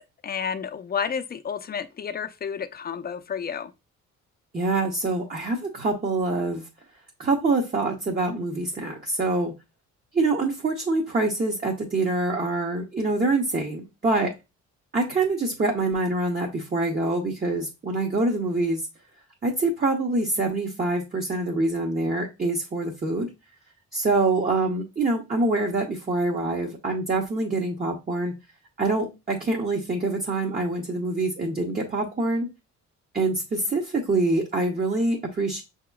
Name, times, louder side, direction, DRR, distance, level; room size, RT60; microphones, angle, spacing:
voice 1, 0.2-3.7, left 7 dB, 30° left, 0.5 m, -31 dB
voice 2, 4.5-6.7 7.2-9.5 10.1-14.3 14.9-18.8 19.4-23.3 23.9-28.3 28.8-32.5 33.1-35.6, right 2 dB, 30° right, 0.8 m, -25 dB
5.9 x 2.8 x 2.3 m
cardioid pair, 90°, 30 cm